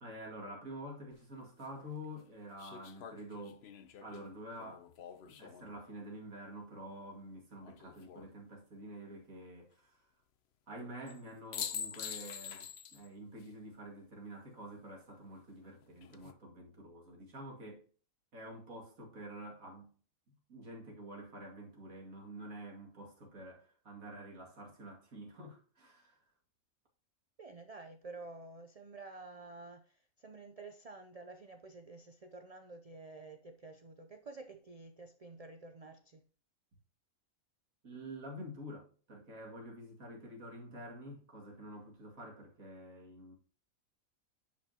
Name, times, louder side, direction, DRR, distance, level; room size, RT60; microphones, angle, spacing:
voice 1, 0.0-3.6 4.0-4.9 5.3-10.1 10.7-17.8 18.3-19.9 20.3-26.2 37.8-43.4, right 1 dB, 80° right, 2.7 m, -48 dB
sound 1, 1.1-1.2 2.6-5.8 7.6-8.3 11.1-11.2 11.5-13.1 13.4-13.5 15.8-16.3, left 8 dB, 55° left, 0.9 m, -45 dB
voice 2, 27.4-36.2, right 3 dB, 45° right, 0.5 m, -50 dB
9.9 x 5.7 x 2.8 m
omnidirectional pair, 1.4 m